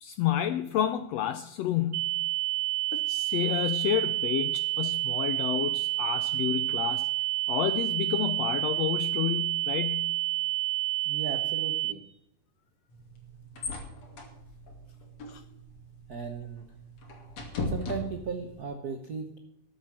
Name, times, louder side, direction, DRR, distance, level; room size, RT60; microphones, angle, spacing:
voice 1, 0.0-2.2 2.9-7.1 7.5-10.1 15.3-15.4, left 11 dB, 80° left, 12 dB, 1.5 m, -30 dB
sound 1, 1.9-11.9, right 16 dB, 85° right, 2.3 m, -29 dB
voice 2, 11.0-12.0 16.1-16.6 17.7-19.4, right 5 dB, 65° right, 5 dB, 0.9 m, -36 dB
sound 2, 12.9-18.6, left 2 dB, 60° left, 3.5 m, -39 dB
13.5 x 7.6 x 7.5 m, 0.80 s
omnidirectional pair, 3.6 m